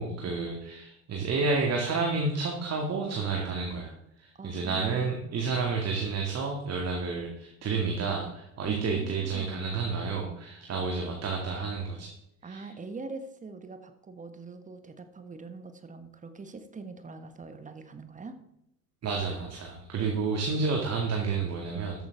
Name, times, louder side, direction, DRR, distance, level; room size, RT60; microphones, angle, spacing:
voice 1, 0.0-3.9 4.2-12.1 12.4-12.7 19.0-22.0, right 4 dB, 30° right, 1 dB, 2.2 m, -30 dB
voice 2, 4.4-5.1 8.6-9.7 12.4-18.4, right 3 dB, 15° right, 9 dB, 1.5 m, -43 dB
13.5 x 9.2 x 3.6 m, 0.83 s
figure-of-eight pair, 70°, 48 cm